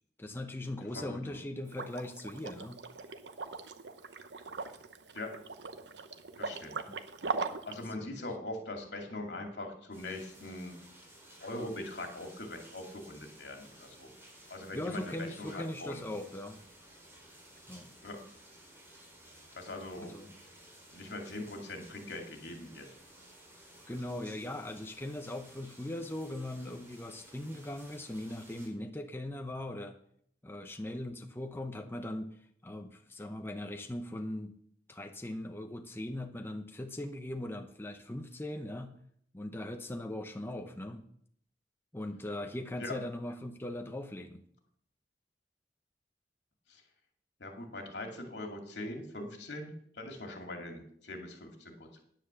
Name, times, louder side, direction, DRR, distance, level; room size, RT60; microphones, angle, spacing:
voice 1, 0.2-2.8 8.0-8.1 14.7-16.6 17.7-17.9 20.0-20.4 23.9-30.0 30.4-34.5 34.9-38.9 39.3-41.0 41.9-44.4, left 1 dB, 15° left, 5 dB, 0.8 m, -40 dB
voice 2, 0.9-1.4 5.1-5.3 6.4-6.8 7.7-10.8 11.4-14.1 14.5-16.1 18.0-18.2 19.6-20.2 20.9-22.9 42.8-43.0 46.7-46.8 47.4-52.0, left 2 dB, 75° left, 3 dB, 2.5 m, -42 dB
Liquid, 1.7-7.8, right 4 dB, 80° right, 0.9 m, -40 dB
sound 1, 9.9-28.7, right 1 dB, 15° right, 4.2 m, -56 dB
9.8 x 9.2 x 6.8 m, 0.65 s
head